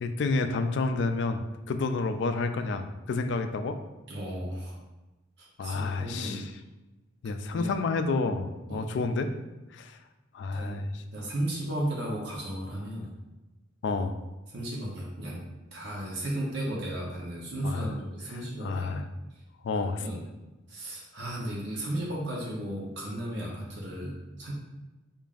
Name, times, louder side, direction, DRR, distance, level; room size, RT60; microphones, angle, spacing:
voice 1, 0.0-3.8 5.6-6.5 7.2-9.3 9.7-10.0 10.3-11.0 13.8-14.2 17.6-17.9 18.3-19.0 19.6-20.0, left 3 dB, 60° left, 8 dB, 0.3 m, -30 dB
voice 2, 4.1-4.8 5.4-6.4 7.5-7.7 8.7-8.8 10.5-10.8 11.1-13.1 14.5-15.4 15.7-19.0 20.0-20.2 20.7-24.5, right 1 dB, 55° right, -4 dB, 0.7 m, -34 dB
5.0 x 2.5 x 2.4 m, 1.1 s
head